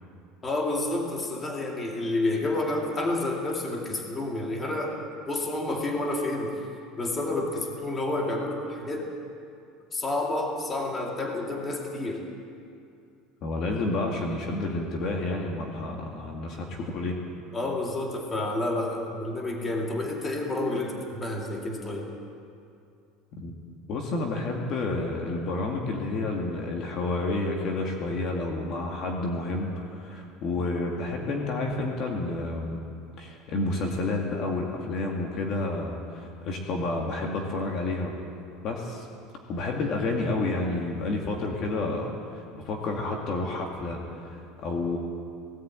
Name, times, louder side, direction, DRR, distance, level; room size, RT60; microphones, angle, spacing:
voice 1, 0.4-5.0 5.3-6.6 7.0-9.1 9.9-12.2 17.5-22.1, left 2 dB, 15° left, 0 dB, 2.4 m, -29 dB
voice 2, 13.4-17.2 23.4-23.5 23.9-32.8 33.2-38.1 38.6-39.1 39.5-45.0, left 2 dB, 35° left, 1 dB, 2.2 m, -30 dB
18.5 x 17.0 x 9.0 m, 2.5 s
cardioid pair, 180°, 0 cm